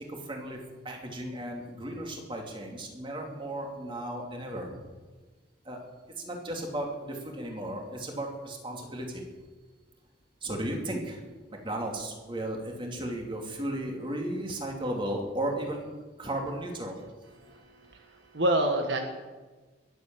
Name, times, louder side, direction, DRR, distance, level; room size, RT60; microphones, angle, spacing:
voice 1, 0.1-0.6 0.8-4.8 5.6-5.8 6.2-9.2 10.4-15.9 16.2-17.0 17.4-17.5, right 1 dB, 25° right, 1 dB, 2.8 m, -35 dB
voice 2, 17.4-18.0 18.3-19.0, right 1 dB, 65° right, 4 dB, 1.5 m, -27 dB
21.5 x 8.0 x 7.7 m, 1.3 s
head